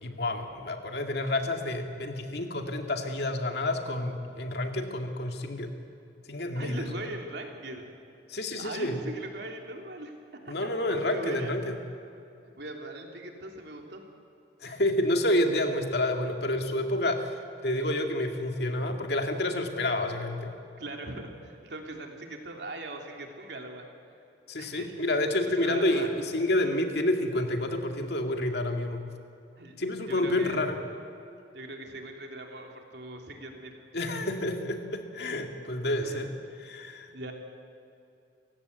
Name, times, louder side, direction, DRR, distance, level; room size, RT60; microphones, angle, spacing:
voice 1, 0.0-5.7 6.3-6.9 8.3-9.0 10.5-11.8 14.6-20.5 24.5-29.0 29.8-30.8 33.9-36.3 36.6-37.1, left 1 dB, 65° left, 4 dB, 2.3 m, -29 dB
voice 2, 6.5-7.9 8.6-10.1 10.4-10.5 11.1-11.5 12.6-14.0 20.8-23.9 24.6-24.9 25.6-26.1 29.6-29.7 30.1-30.6 31.5-33.7 36.0-36.2 37.1-37.3, right 2 dB, 70° right, 2 dB, 3.2 m, -40 dB
30.0 x 16.5 x 8.2 m, 2.6 s
head